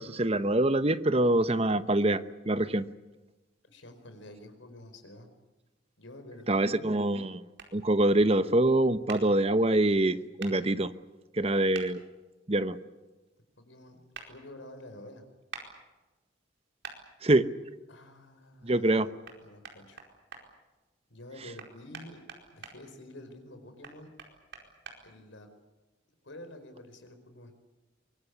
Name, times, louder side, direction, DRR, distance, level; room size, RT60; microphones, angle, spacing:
voice 1, 0.0-2.8 6.5-7.4 7.7-10.9 11.3-12.0 12.5-12.8 17.2-17.5 18.6-19.1, right 1 dB, 30° right, 12 dB, 1.0 m, -25 dB
voice 2, 3.7-5.3 6.0-7.0 13.6-14.0 14.3-15.3 17.9-19.1 19.4-20.0 21.1-22.2 22.5-24.1 25.0-25.5 26.2-27.5, left 1 dB, 85° left, 7 dB, 4.8 m, -48 dB
sound 1, 7.6-7.7 9.1-9.2 10.4-10.5 11.7-11.9 14.1-14.3 15.5-15.7 16.8-17.0 19.2-19.4 19.6-20.4 21.6-22.7 23.8-25.0, right 5 dB, 70° right, 4.7 m, -43 dB
24.0 x 22.5 x 8.4 m, 1.1 s
head